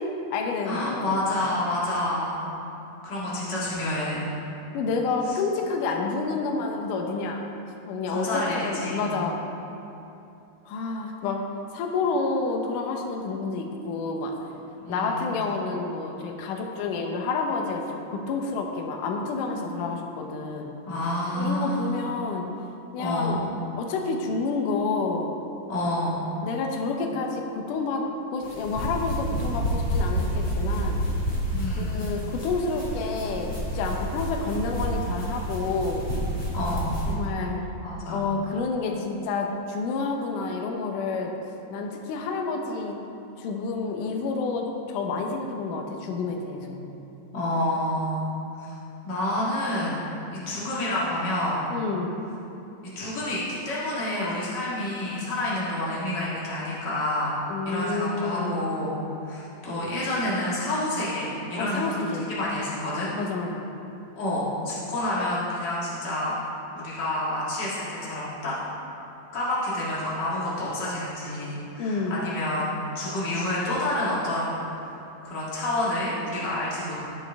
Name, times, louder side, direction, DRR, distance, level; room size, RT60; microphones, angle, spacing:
voice 1, 0.0-1.2 4.7-7.4 7.9-9.4 10.7-11.4 11.7-14.3 14.9-20.7 21.3-22.5 22.9-23.4 23.8-25.4 26.4-28.1 28.3-31.0 31.7-36.0 37.1-37.6 38.1-41.3 41.7-43.0 43.4-46.8 51.7-52.1 57.5-58.6 61.6-62.3 63.1-63.7 71.8-72.2, left 4 dB, 90° left, 2 dB, 1.8 m, -29 dB
voice 2, 0.6-2.4 3.0-4.2 5.2-5.4 8.1-9.2 14.8-15.3 20.9-22.0 23.0-23.4 25.7-26.2 31.5-32.0 36.5-37.0 37.8-38.3 47.3-48.2 48.6-48.7 49.0-50.0 50.4-51.7 52.9-57.4 57.6-58.9 59.2-61.9 62.3-63.1 64.1-66.3 66.7-68.5 69.3-74.9 75.2-77.0, left 1 dB, 60° left, -8 dB, 1.1 m, -28 dB
sound 1, 28.4-37.1, equal, 40° left, 0.8 m, -29 dB
18.0 x 6.3 x 3.4 m, 2.8 s
omnidirectional pair, 4.9 m